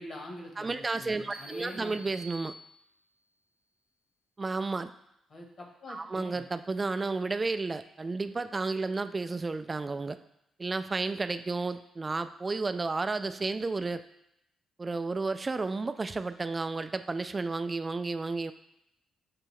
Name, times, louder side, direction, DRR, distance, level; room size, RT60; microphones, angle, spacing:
voice 1, 0.0-0.7 1.0-2.2 5.3-6.4, left 1 dB, 55° left, 0 dB, 1.2 m, -44 dB
voice 2, 0.6-2.6 4.4-4.9 5.9-10.2 10.6-14.0 14.8-18.5, right 3 dB, 30° right, 10 dB, 0.3 m, -32 dB
sound 1, 1.3-3.2, right 1 dB, 75° left, 1.0 m, -49 dB
6.6 x 2.5 x 3.2 m, 0.81 s
hypercardioid pair, 45°, 0 cm